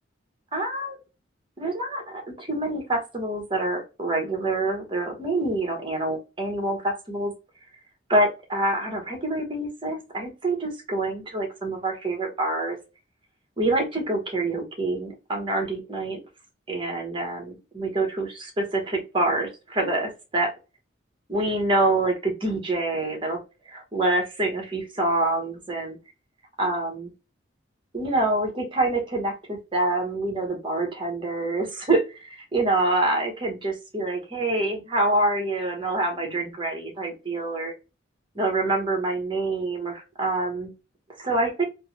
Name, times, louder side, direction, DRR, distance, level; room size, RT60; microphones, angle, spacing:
voice 1, 0.5-1.0 1.6-7.3 8.1-12.8 13.6-16.2 16.7-20.5 21.3-23.4 23.7-26.0 26.6-27.1 27.9-37.7 38.3-40.7 41.2-41.6, right 2 dB, 25° right, 2 dB, 1.1 m, -26 dB
3.3 x 2.1 x 2.8 m, 0.29 s
head